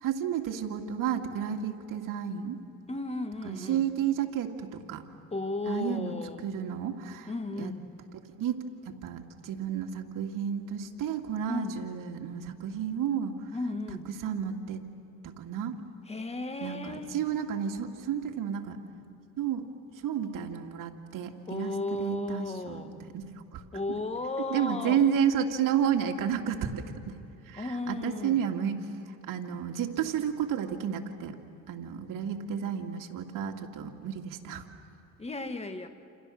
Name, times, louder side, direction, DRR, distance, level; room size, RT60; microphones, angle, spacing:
voice 1, 0.0-2.6 3.4-5.0 5.7-6.2 6.4-7.7 8.4-13.4 14.2-14.8 15.2-15.8 16.6-18.8 19.4-19.7 20.0-21.7 22.0-23.2 23.5-23.6 24.5-27.2 27.5-31.4 31.7-34.6, right 8 dB, 70° right, 3 dB, 2.5 m, -31 dB
voice 2, 2.9-3.8 5.3-6.4 7.3-7.9 11.5-11.8 13.5-14.1 16.1-17.1 21.5-22.9 23.7-25.1 27.6-28.4 35.2-35.9, left 2 dB, 20° left, 7 dB, 2.0 m, -34 dB
29.0 x 28.5 x 6.6 m, 2.8 s
cardioid pair, 90°, 34 cm